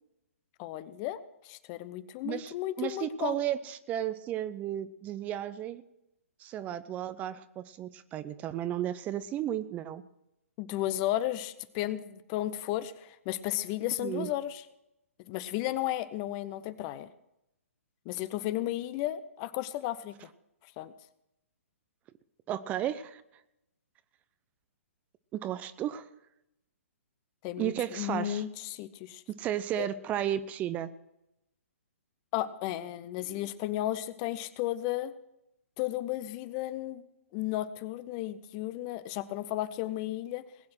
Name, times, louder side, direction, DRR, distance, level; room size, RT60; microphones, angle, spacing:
voice 1, 0.6-3.4 10.6-14.6 15.3-17.1 18.1-20.2 20.8-20.9 27.4-29.2 29.8-29.9 32.3-35.1 35.8-37.0 37.3-40.4, left 14 dB, 30° left, 15 dB, 0.8 m, -34 dB
voice 2, 2.2-5.8 6.4-10.0 14.0-14.3 22.5-23.2 25.4-26.0 27.6-28.4 29.4-30.9, right 11 dB, 20° right, 14 dB, 0.6 m, -33 dB
20.0 x 8.6 x 6.2 m, 0.86 s
figure-of-eight pair, 125°, 8 cm